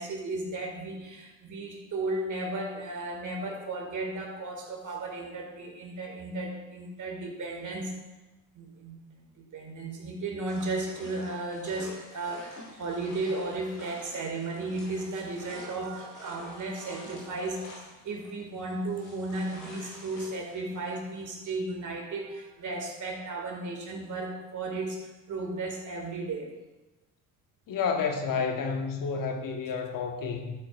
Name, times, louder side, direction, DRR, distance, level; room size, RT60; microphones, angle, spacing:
voice 1, 0.0-7.9 8.5-17.7 18.0-26.5, right 2 dB, 40° right, 1 dB, 2.1 m, -35 dB
sound 1, 10.4-21.6, left 1 dB, 85° left, 2.9 m, -49 dB
voice 2, 27.7-30.5, left 5 dB, 45° left, 4 dB, 1.3 m, -30 dB
12.0 x 8.8 x 2.5 m, 1.1 s
figure-of-eight pair, 55°, 44 cm